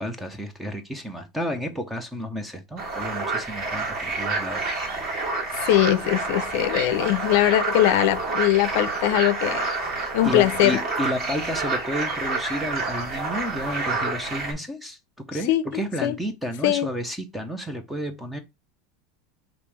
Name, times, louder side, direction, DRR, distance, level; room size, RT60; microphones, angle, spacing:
voice 1, 0.0-4.7 10.2-15.0 15.3-18.4, equal, ahead, 0.6 m, -31 dB
sound 1, 2.8-14.5, right 3 dB, 30° right, 1.6 m, -28 dB
voice 2, 5.5-9.7 10.1-10.8 15.5-16.2 16.6-16.9, left 14 dB, 55° left, 0.6 m, -21 dB
5.3 x 3.0 x 3.2 m
supercardioid pair, 175°, 0 cm